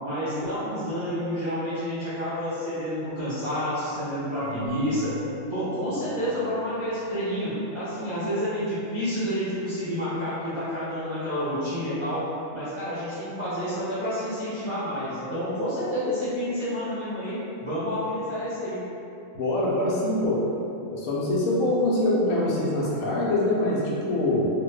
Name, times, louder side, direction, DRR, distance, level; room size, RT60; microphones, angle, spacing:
voice 1, 0.0-5.2 5.5-12.3 12.5-18.8, equal, 45° right, -14 dB, 0.3 m, -29 dB
Marimba xylophone / Wood, 4.4-7.2, left 1 dB, 25° left, 0.6 m, -41 dB
voice 2, 19.3-20.4 20.9-24.5, left 1 dB, 75° left, -6 dB, 1.0 m, -24 dB
2.9 x 2.1 x 3.1 m, 2.9 s
omnidirectional pair, 1.5 m